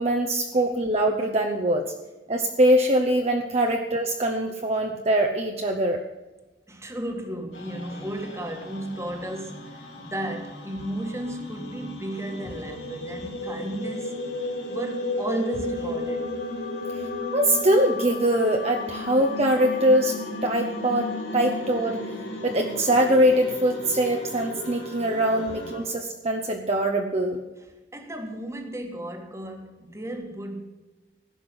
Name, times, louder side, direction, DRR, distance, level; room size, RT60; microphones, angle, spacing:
voice 1, 0.0-1.8 2.3-6.0 17.3-20.2 20.4-22.0 22.4-27.4, right 1 dB, 35° right, 1.0 m, -23 dB
voice 2, 6.7-14.3 14.7-16.4 16.8-16.9 25.9-26.0 27.9-30.6, right 1 dB, 15° right, 1.6 m, -34 dB
sound 1, 7.5-25.8, left 2 dB, 65° left, 3.9 m, -34 dB
16.0 x 6.0 x 9.7 m
head